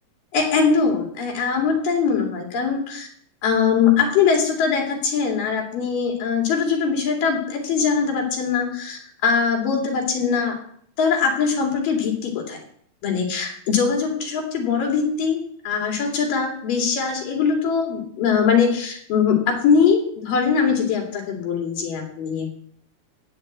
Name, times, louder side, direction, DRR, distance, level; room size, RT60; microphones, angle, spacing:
voice 1, 0.3-3.1 3.4-10.6 11.0-12.6 13.0-15.4 15.6-22.6, left 6 dB, 70° left, 2 dB, 4.0 m, -21 dB
15.5 x 5.4 x 8.5 m, 0.64 s
omnidirectional pair, 4.1 m